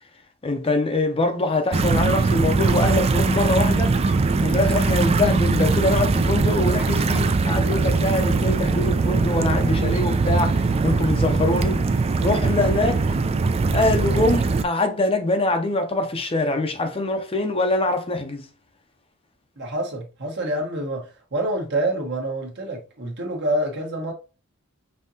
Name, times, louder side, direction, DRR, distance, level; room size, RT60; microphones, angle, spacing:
voice 1, 0.4-4.0 4.4-13.0 13.7-18.5, left 2 dB, 25° left, 0.6 m, -24 dB
sound 1, 1.7-14.6, right 3 dB, 30° right, 0.3 m, -21 dB
voice 2, 19.6-24.1, right 1 dB, 55° right, 1.3 m, -27 dB
5.5 x 2.8 x 2.7 m
head